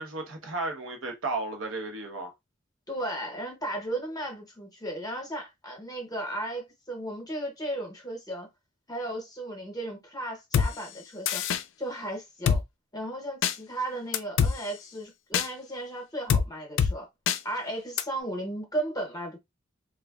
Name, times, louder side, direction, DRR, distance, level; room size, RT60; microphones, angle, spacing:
voice 1, 0.0-2.3, right 2 dB, 75° right, 0.9 m, -34 dB
voice 2, 2.9-8.5 8.9-11.4 11.8-12.6 12.9-17.1 17.4-19.4, right 1 dB, 20° left, 0.8 m, -35 dB
Drum kit, 10.5-10.7 11.3-11.6 12.5-12.6 13.4-13.5 14.1-14.5 15.3-15.5 16.3-16.4 16.8-16.9 17.3-17.4 18.0-18.1, left 7 dB, 65° left, 0.3 m, -23 dB
3.3 x 2.3 x 2.3 m
head